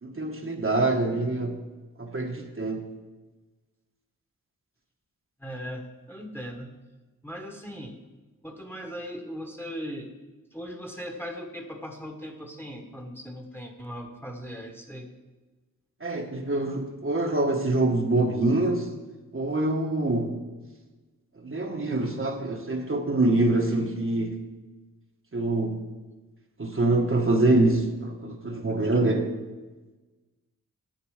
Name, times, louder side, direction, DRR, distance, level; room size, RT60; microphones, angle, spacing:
voice 1, 0.0-1.6 2.0-2.9 16.0-18.9 19.3-20.3 21.4-24.3 25.3-25.8 26.6-29.3, right 2 dB, 40° right, 2 dB, 1.2 m, -25 dB
voice 2, 5.4-6.7 7.2-8.0 8.4-10.1 10.5-15.1, equal, 5° left, 3 dB, 1.4 m, -38 dB
10.5 x 6.6 x 4.9 m, 1.2 s
cardioid pair, 60°, 34 cm